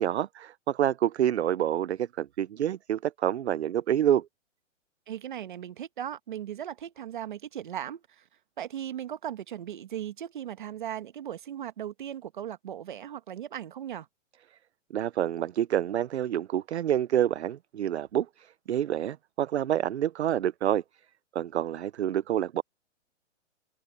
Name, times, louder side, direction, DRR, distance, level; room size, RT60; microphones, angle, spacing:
voice 1, 0.0-4.3 14.9-20.8 21.3-22.6, right 11 dB, 60° right, 0.6 m, -27 dB
voice 2, 5.1-8.3 8.6-14.1, right 10 dB, 40° right, 1.3 m, -37 dB
hypercardioid pair, 180°, 37 cm